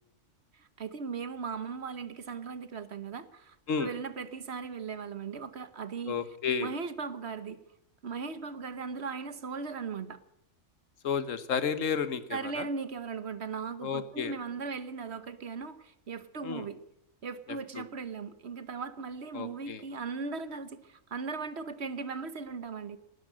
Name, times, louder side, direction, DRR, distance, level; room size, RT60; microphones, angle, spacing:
voice 1, 0.5-6.1 6.6-7.6 8.0-10.2 12.3-16.8 17.2-23.0, right 5 dB, 60° right, 13 dB, 1.3 m, -38 dB
voice 2, 6.1-6.7 11.0-12.7 13.8-14.3 16.4-16.7 17.7-17.8 19.3-19.8, left 6 dB, 80° left, 13 dB, 1.5 m, -32 dB
19.0 x 12.0 x 6.3 m, 0.82 s
omnidirectional pair, 1.3 m